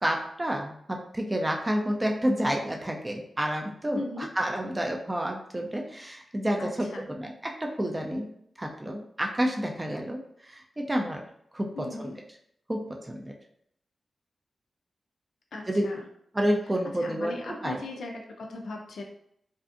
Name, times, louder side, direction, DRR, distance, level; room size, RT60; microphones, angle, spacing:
voice 1, 0.0-8.3 8.6-11.2 11.5-12.1 12.7-13.3 15.7-15.9 16.3-17.8, equal, 20° right, 1 dB, 0.4 m, -29 dB
voice 2, 3.9-4.3 6.6-7.1 11.8-12.2 15.5-16.0 17.0-19.0, left 2 dB, 85° left, 1 dB, 0.3 m, -38 dB
2.5 x 2.5 x 2.5 m, 0.70 s
cardioid pair, 80°, 0 cm